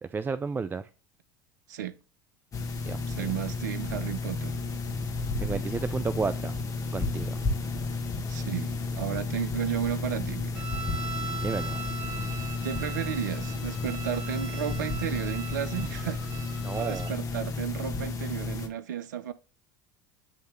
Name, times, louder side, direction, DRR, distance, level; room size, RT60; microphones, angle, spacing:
voice 1, 0.0-0.8 2.9-3.3 5.4-6.6 6.9-7.4 11.2-11.8 16.6-17.1, right 5 dB, 20° right, 0.4 m, -32 dB
sound 1, 2.5-18.7, left 3 dB, 35° left, 1.4 m, -32 dB
voice 2, 3.1-4.6 8.3-10.7 12.6-16.3 16.7-19.3, right 10 dB, 75° right, 0.5 m, -33 dB
sound 2, 10.5-17.1, right 5 dB, 50° right, 2.7 m, -40 dB
9.5 x 3.2 x 3.1 m
hypercardioid pair, 75°, 10 cm